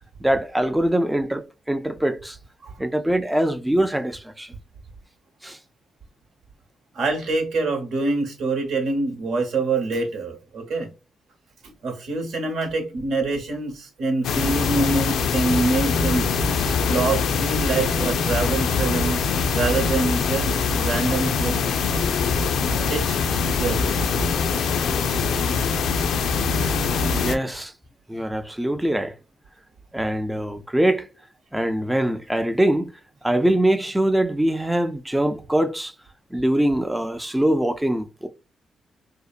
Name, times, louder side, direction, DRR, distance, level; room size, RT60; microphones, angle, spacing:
voice 1, 0.2-2.4 2.8-4.5 5.4-5.6 27.1-27.7 28.1-29.2 29.9-31.1 31.5-32.9 33.2-35.9 36.3-38.3, right 1 dB, 10° right, 0.3 m, -23 dB
voice 2, 6.9-10.9 11.8-16.3 16.8-19.2 19.5-21.6 22.9-23.2 23.4-23.9, right 3 dB, 75° right, 1.0 m, -25 dB
sound 1, 14.2-27.4, left 5 dB, 80° left, 0.4 m, -23 dB
2.8 x 2.0 x 2.4 m
cardioid pair, 65°, 0 cm